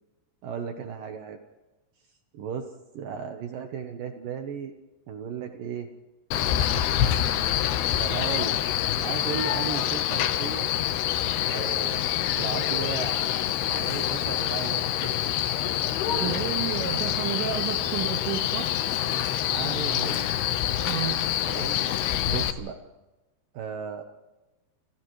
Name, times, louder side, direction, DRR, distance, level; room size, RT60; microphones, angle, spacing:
voice 1, 0.4-1.4 2.3-4.7 5.1-5.9 8.0-8.6 8.9-10.7 11.5-12.1 12.4-13.4 13.7-15.3 16.1-16.4 19.4-20.3 21.5-21.8 22.3-22.8 23.5-24.0, right 7 dB, 70° right, 6 dB, 2.2 m, -35 dB
Male speech man speaking, 6.3-22.5, left 11 dB, 70° left, 2.8 m, -26 dB
voice 2, 16.2-18.7 20.9-21.2, right 10 dB, 85° right, 2 dB, 3.9 m, -31 dB
28.5 x 28.5 x 3.2 m, 1.1 s
omnidirectional pair, 5.2 m